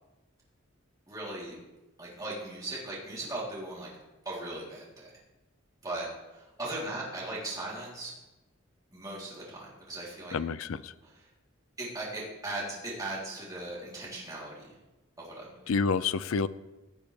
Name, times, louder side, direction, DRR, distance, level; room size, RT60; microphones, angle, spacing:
voice 1, 1.1-1.6 2.0-3.9 4.3-5.1 5.8-8.1 8.9-10.3 11.0-11.2 11.8-14.7 15.2-15.7, right 2 dB, 20° right, -6 dB, 3.4 m, -38 dB
voice 2, 10.3-10.9 15.7-16.5, left 5 dB, 90° left, 15 dB, 0.5 m, -28 dB
17.0 x 8.1 x 3.4 m, 1.0 s
head